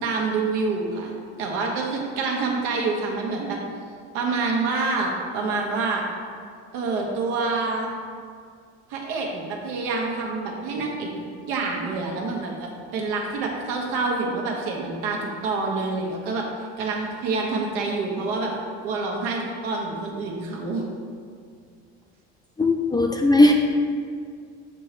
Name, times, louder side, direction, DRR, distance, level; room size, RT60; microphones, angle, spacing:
voice 1, 0.0-1.1 1.4-3.6 4.1-6.0 6.7-7.9 8.9-11.1 11.5-16.5 16.8-18.5 18.8-20.8, right 3 dB, 80° right, 0 dB, 1.2 m, -27 dB
voice 2, 22.6-23.5, left 1 dB, 10° left, 1 dB, 0.4 m, -17 dB
7.4 x 3.0 x 4.9 m, 2.1 s
supercardioid pair, 95°, 34 cm